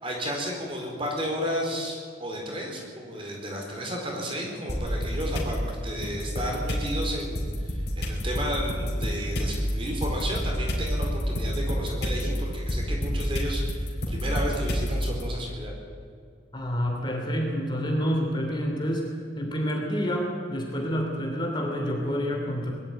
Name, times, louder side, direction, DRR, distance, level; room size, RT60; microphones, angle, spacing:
voice 1, 0.0-15.7, equal, 30° right, 0 dB, 4.3 m, -33 dB
sound 1, 4.7-5.5 6.0-15.2, equal, 55° left, 4.3 m, -29 dB
voice 2, 16.5-19.1 19.4-22.7, equal, 25° left, 1 dB, 3.1 m, -28 dB
21.5 x 13.5 x 9.2 m, 2.3 s
head